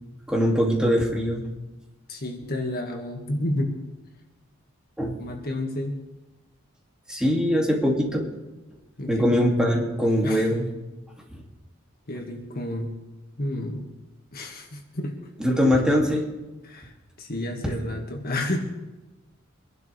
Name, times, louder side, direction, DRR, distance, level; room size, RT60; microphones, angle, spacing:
voice 1, 0.3-1.4 5.0-5.2 7.1-8.3 9.1-10.7 15.4-16.2, equal, 5° right, -2 dB, 2.5 m, -22 dB
voice 2, 2.1-3.8 5.2-6.0 9.0-9.5 10.2-10.6 12.1-13.0 13.4-13.9 14.3-15.3 16.6-16.9 17.2-18.6, left 1 dB, 45° left, 3 dB, 1.9 m, -30 dB
24.5 x 12.0 x 3.4 m, 1.1 s
head